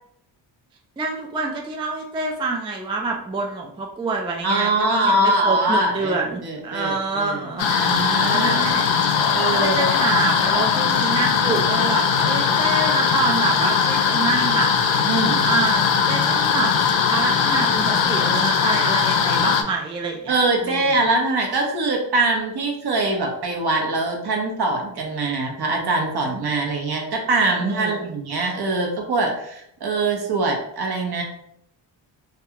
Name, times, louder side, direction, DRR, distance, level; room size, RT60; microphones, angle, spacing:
voice 1, 1.0-8.9 9.5-14.9 15.5-16.7 17.1-20.9 27.6-28.1, right 3 dB, 15° right, 1 dB, 0.3 m, -27 dB
voice 2, 4.4-7.4 7.7-8.7 9.3-9.9 15.0-15.5 20.3-31.2, right 2 dB, 55° right, 1 dB, 0.8 m, -23 dB
sound 1, 7.6-19.6, left 6 dB, 70° left, 0.5 m, -20 dB
2.3 x 2.3 x 2.9 m, 0.71 s
cardioid pair, 60°, 47 cm